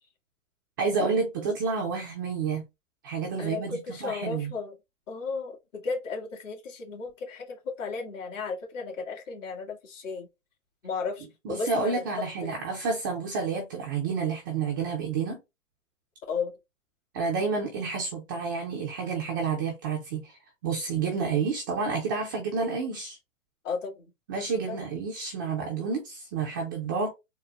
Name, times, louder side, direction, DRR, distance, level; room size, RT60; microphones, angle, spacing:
voice 1, 0.8-2.6 3.0-4.5 11.4-15.4 17.1-23.2 24.3-27.1, right 5 dB, 20° right, 0.3 m, -29 dB
voice 2, 3.4-4.7 5.1-10.3 10.8-12.0 12.4-12.5 16.3-16.5 23.6-24.1 24.7-24.8, left 4 dB, 65° left, 2.1 m, -34 dB
4.0 x 2.1 x 3.3 m
hypercardioid pair, 135°, 40 cm